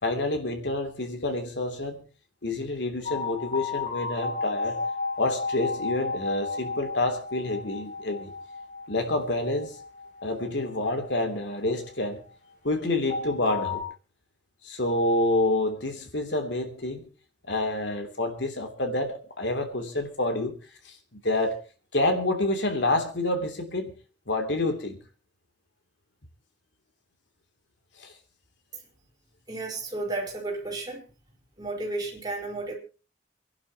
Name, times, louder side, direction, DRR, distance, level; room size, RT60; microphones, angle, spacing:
voice 1, 0.0-2.1 2.4-4.8 5.2-8.3 8.9-9.8 10.2-12.2 12.6-13.8 14.6-17.1 17.5-20.6 20.8-21.6 21.9-24.0 24.3-25.0 28.0-28.1, left 2 dB, 80° left, 5 dB, 3.0 m, -28 dB
sound 1, 3.1-12.1 13.1-13.8, left 4 dB, 45° left, 6.0 m, -33 dB
voice 2, 29.5-31.0 31.6-32.7, right 2 dB, 25° right, -2 dB, 4.6 m, -32 dB
28.0 x 11.0 x 3.0 m, 0.33 s
head